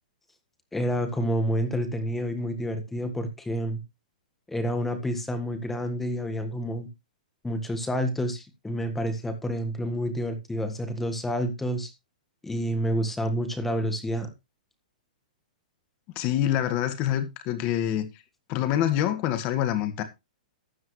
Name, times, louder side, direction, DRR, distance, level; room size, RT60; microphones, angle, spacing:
voice 1, 0.7-3.8 4.5-6.9 7.4-11.9 12.4-14.3, equal, 5° left, 1.6 m, -29 dB
voice 2, 16.2-18.1 18.5-20.0, left 11 dB, 25° left, 1.7 m, -26 dB
13.0 x 10.5 x 3.2 m
hypercardioid pair, 165°, 4 cm